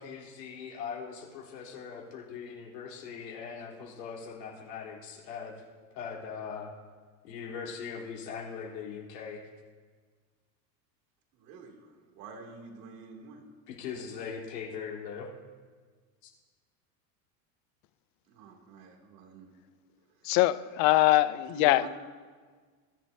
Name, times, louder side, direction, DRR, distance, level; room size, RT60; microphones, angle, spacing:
voice 1, 0.0-5.5 5.9-6.7 7.2-9.4 13.7-15.3, left 6 dB, 80° left, -3 dB, 3.7 m, -40 dB
voice 2, 11.3-13.4 18.3-19.5 20.1-20.3 21.4-21.9, right 4 dB, 65° right, 1 dB, 2.7 m, -47 dB
voice 3, 20.3-21.9, left 16 dB, 40° left, 15 dB, 0.4 m, -23 dB
22.5 x 11.5 x 2.7 m, 1.5 s
supercardioid pair, 125°, 49 cm